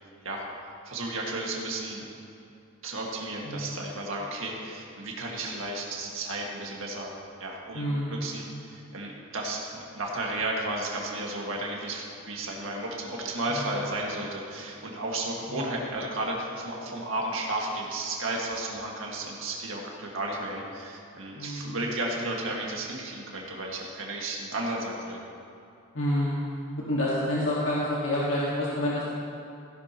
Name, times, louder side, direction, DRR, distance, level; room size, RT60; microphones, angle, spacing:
voice 1, 0.9-2.1 2.8-7.8 8.1-25.2, right 2 dB, 70° right, -2 dB, 1.9 m, -33 dB
voice 2, 7.7-8.2 13.5-13.7 15.5-15.6 21.3-21.8 25.9-26.4 26.9-29.1, left 1 dB, 75° left, -7 dB, 1.8 m, -28 dB
16.0 x 11.0 x 3.0 m, 2.7 s
head